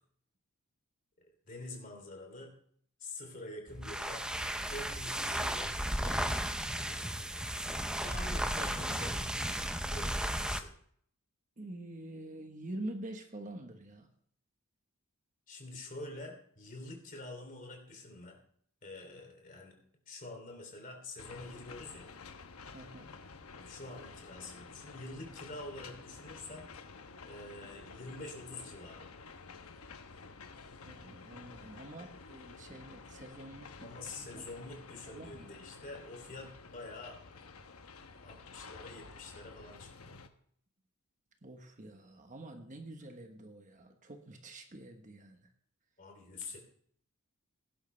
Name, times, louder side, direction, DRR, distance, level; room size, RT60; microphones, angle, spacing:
voice 1, 1.5-2.5 3.0-4.2 4.7-6.5 8.0-9.5 9.9-10.7 15.5-18.4 18.8-19.7 20.1-22.1 23.5-26.7 27.3-29.1 33.8-37.5 38.2-40.1 46.0-46.6, left 2 dB, 40° left, 2 dB, 3.1 m, -46 dB
sound 1, 3.7-10.7, right 1 dB, 5° right, 0.6 m, -35 dB
voice 2, 11.6-14.1 22.7-23.1 30.8-33.9 34.3-34.4 35.1-35.5 41.4-45.5, right 1 dB, 35° right, 5 dB, 1.2 m, -46 dB
sound 2, 21.2-40.3, left 4 dB, 75° left, 1.0 m, -51 dB
17.0 x 11.0 x 3.3 m, 0.64 s
head